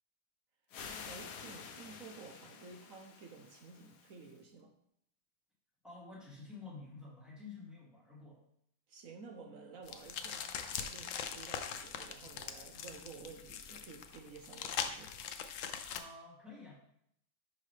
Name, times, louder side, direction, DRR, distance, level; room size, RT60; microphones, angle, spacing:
sound 1, 0.7-4.4, left 6 dB, 65° left, 1.2 m, -49 dB
voice 1, 1.0-4.7 8.9-15.1, right 4 dB, 60° right, 4 dB, 0.9 m, -52 dB
voice 2, 5.8-8.4 15.9-16.9, left 3 dB, ahead, -6 dB, 2.5 m, -50 dB
sound 2, 9.9-16.0, left 7 dB, 85° left, 0.7 m, -42 dB
11.0 x 4.6 x 3.3 m, 0.71 s
omnidirectional pair, 2.1 m